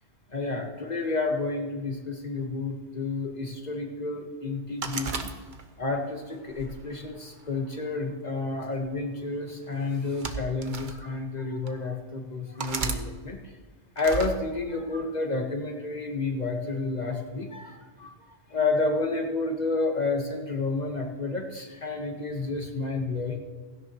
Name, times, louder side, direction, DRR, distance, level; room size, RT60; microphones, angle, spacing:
voice 1, 0.3-5.3 5.8-13.4 14.0-18.1 18.5-23.4, left 3 dB, 40° left, 2 dB, 1.5 m, -30 dB
sound 1, 4.8-5.9 6.5-7.7 8.6-8.9 9.9-11.0 11.7-11.8 12.6-13.0 14.0-14.3, right 4 dB, 45° right, 1.0 m, -34 dB
16.5 x 16.0 x 3.0 m, 1.3 s
omnidirectional pair, 1.2 m